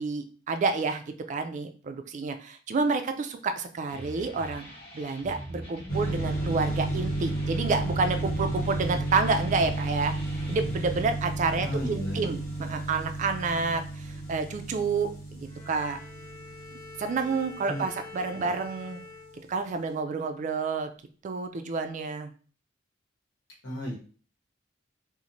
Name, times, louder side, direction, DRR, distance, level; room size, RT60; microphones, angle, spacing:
voice 1, 0.0-10.1 10.5-16.0 17.0-19.0 19.5-20.9 21.2-22.3, right 4 dB, 40° right, 7 dB, 0.3 m, -29 dB
sound 1, 3.9-11.0, right 1 dB, 30° left, 1.2 m, -42 dB
sound 2, 5.9-18.3, right 2 dB, 50° left, 1.1 m, -33 dB
voice 2, 11.6-12.4 17.7-17.8 18.3-18.5 23.6-23.9, equal, 90° left, -3 dB, 0.9 m, -34 dB
Bowed string instrument, 15.5-19.9, left 3 dB, 5° right, 0.8 m, -46 dB
2.9 x 2.1 x 2.5 m, 0.40 s
head